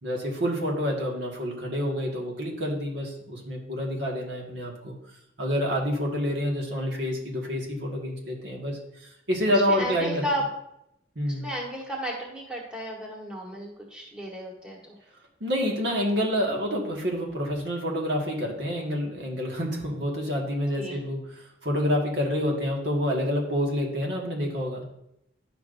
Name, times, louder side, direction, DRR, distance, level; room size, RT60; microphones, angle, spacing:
voice 1, 0.0-4.9 5.4-10.2 11.1-11.5 15.4-24.8, equal, 70° right, -1 dB, 1.7 m, -28 dB
voice 2, 9.7-10.4 11.4-15.0 20.7-21.0, equal, 5° right, -3 dB, 1.3 m, -33 dB
10.5 x 5.9 x 2.6 m, 0.79 s
head